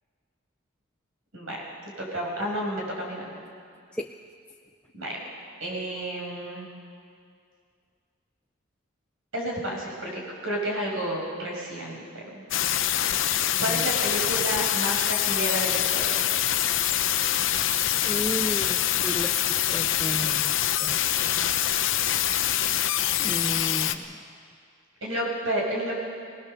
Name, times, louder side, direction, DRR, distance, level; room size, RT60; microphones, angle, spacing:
voice 1, 2.0-3.3 4.9-5.2 5.6-6.7 9.3-12.4 13.1-16.2 25.0-26.0, right 1 dB, 75° right, -1 dB, 5.7 m, -31 dB
sound 1, 12.5-24.0, left 11 dB, 65° left, 0.8 m, -25 dB
voice 2, 13.5-13.9 18.1-21.0 23.2-24.0, equal, 5° left, 3 dB, 0.4 m, -34 dB
21.0 x 19.0 x 6.7 m, 2.3 s
head